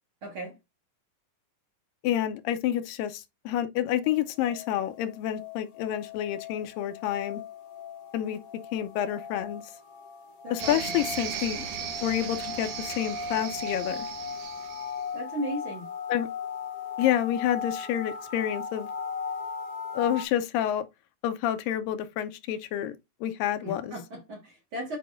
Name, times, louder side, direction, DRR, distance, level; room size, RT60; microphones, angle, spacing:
voice 1, 0.2-0.5 10.4-10.8 15.1-15.9 23.6-25.0, equal, 50° right, 1.9 m, -36 dB
voice 2, 2.0-7.4 8.1-8.4 8.7-9.6 10.5-11.7 12.0-14.0 16.1-16.3 17.0-18.9 19.9-20.9 21.2-23.0 23.2-24.0, left 11 dB, 90° left, 2.4 m, -28 dB
sound 1, 4.0-20.2, left 5 dB, 50° left, 1.6 m, -38 dB
sound 2, 10.6-15.1, right 7 dB, 70° right, 2.5 m, -37 dB
8.7 x 4.6 x 2.5 m
omnidirectional pair, 4.0 m